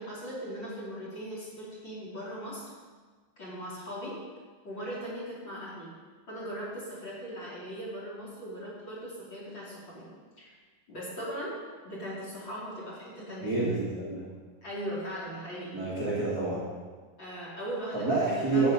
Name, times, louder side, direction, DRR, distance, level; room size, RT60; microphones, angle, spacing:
voice 1, 0.0-2.7 3.4-4.2 4.6-5.9 6.3-10.1 10.4-10.5 10.9-11.5 11.8-13.6 14.6-15.8 17.2-18.7, equal, 30° left, -7 dB, 3.4 m, -39 dB
voice 2, 13.4-14.3 15.7-16.6 17.9-18.7, right 3 dB, 30° right, -8 dB, 2.0 m, -28 dB
12.5 x 8.9 x 5.3 m, 1.5 s
omnidirectional pair, 4.5 m